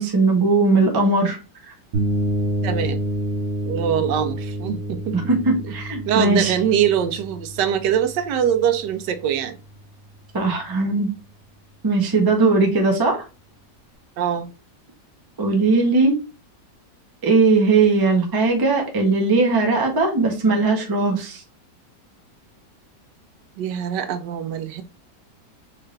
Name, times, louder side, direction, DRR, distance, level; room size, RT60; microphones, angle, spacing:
voice 1, 0.0-1.4 5.1-6.5 10.3-11.1 11.8-13.2 15.4-16.2 17.2-21.4, right 3 dB, 30° right, 0.4 m, -19 dB
sound 1, 1.9-9.7, right 1 dB, 55° right, 1.0 m, -28 dB
voice 2, 2.6-3.0 3.7-5.1 6.1-9.6 14.2-14.5 23.6-24.8, right 9 dB, 80° right, 1.2 m, -23 dB
4.4 x 2.5 x 3.1 m
omnidirectional pair, 1.9 m